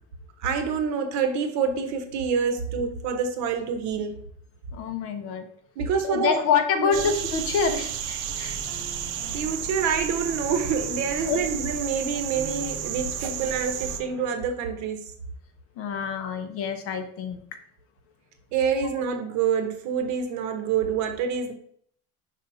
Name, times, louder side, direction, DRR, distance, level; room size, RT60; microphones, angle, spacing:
voice 1, 0.4-4.1 5.8-6.4 6.8-7.1 9.3-15.1 18.5-21.5, right 6 dB, 45° right, 7 dB, 1.0 m, -27 dB
voice 2, 4.7-5.4 6.0-8.6 9.3-9.4 11.3-11.4 15.8-17.4, left 6 dB, 35° left, 7 dB, 0.6 m, -26 dB
sound 1, 6.9-14.0, right 9 dB, 80° right, 0.9 m, -32 dB
sound 2, 8.3-14.3, right 1 dB, 5° left, 1.3 m, -45 dB
5.4 x 4.2 x 5.5 m, 0.62 s
cardioid pair, 180°, 39 cm